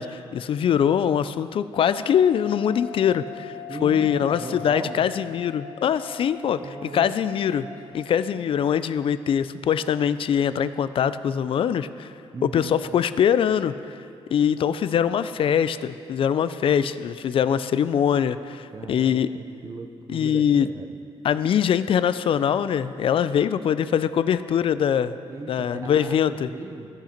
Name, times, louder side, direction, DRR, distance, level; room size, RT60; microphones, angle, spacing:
voice 1, 0.0-7.7 7.9-12.1 12.4-14.0 14.3-19.3 20.1-20.7 21.2-25.2 25.5-26.5, left 8 dB, 55° left, 14 dB, 0.4 m, -23 dB
sound 1, 1.8-7.9, left 7 dB, 75° right, 1.4 m, -41 dB
voice 2, 3.7-5.1 6.6-7.1 12.3-12.8 18.7-20.9 25.3-26.9, right 3 dB, 30° right, 7 dB, 0.6 m, -38 dB
15.5 x 5.8 x 4.3 m, 2.5 s
cardioid pair, 110°, 11 cm